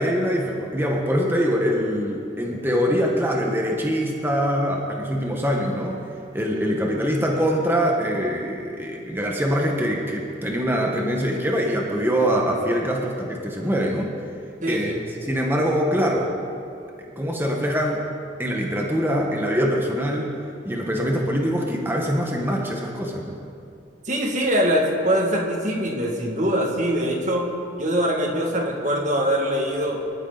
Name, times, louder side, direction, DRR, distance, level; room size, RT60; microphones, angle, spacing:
voice 1, 0.0-6.0 6.3-14.1 14.7-16.3 17.1-18.0 18.4-20.3 20.6-23.4, equal, 10° right, -1 dB, 1.4 m, -23 dB
voice 2, 14.6-15.0 24.1-27.5 27.8-30.0, equal, 40° right, 0 dB, 2.2 m, -23 dB
24.0 x 13.0 x 4.1 m, 2.5 s
head